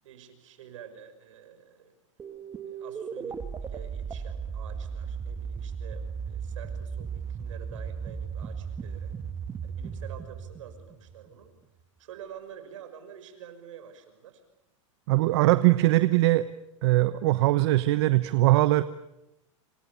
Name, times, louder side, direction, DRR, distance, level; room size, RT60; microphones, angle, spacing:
voice 1, 0.0-2.0 2.6-9.2 9.6-11.6 12.0-14.4, right 8 dB, 75° right, 9 dB, 5.9 m, -48 dB
sound 1, 2.2-11.5, right 6 dB, 15° right, 1.9 m, -36 dB
voice 2, 15.1-16.5 16.8-18.8, right 17 dB, 60° right, 13 dB, 1.0 m, -21 dB
27.5 x 25.5 x 7.1 m, 0.91 s
supercardioid pair, 140°, 16 cm